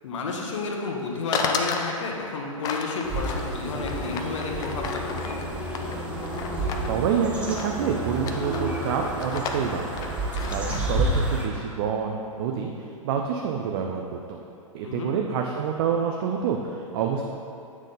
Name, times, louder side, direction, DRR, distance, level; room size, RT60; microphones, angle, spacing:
voice 1, 0.0-5.4 10.3-10.6 14.8-15.1, left 4 dB, 60° left, 0 dB, 0.9 m, -31 dB
sound 1, 1.3-1.9 2.6-6.9 7.5-7.9 8.1-8.6 9.0-11.2, left 5 dB, 20° left, 0.4 m, -33 dB
sound 2, 3.0-11.5, right 1 dB, 5° right, 0.9 m, -30 dB
voice 2, 6.9-10.1 10.5-14.4 14.7-17.2, right 7 dB, 45° right, 2 dB, 0.5 m, -27 dB
8.4 x 3.7 x 3.8 m, 2.6 s
figure-of-eight pair, 110°, 18 cm